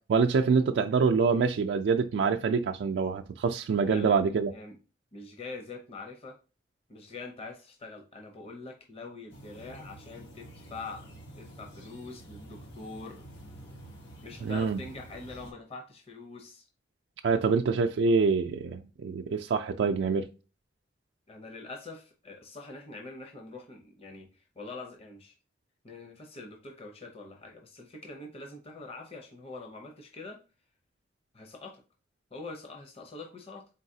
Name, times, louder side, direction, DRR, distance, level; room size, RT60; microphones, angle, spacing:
voice 1, 0.1-4.5 14.4-14.8 17.2-20.3, right 5 dB, 85° right, 0.3 m, -25 dB
voice 2, 5.1-6.4 6.9-11.1 11.4-13.3 14.2-16.7 21.3-24.3 24.6-25.3 25.8-30.4 31.3-31.8 32.3-33.7, left 3 dB, 35° left, 0.7 m, -44 dB
sound 1, 9.3-15.5, right 1 dB, 85° left, 1.1 m, -48 dB
3.9 x 3.9 x 2.7 m
head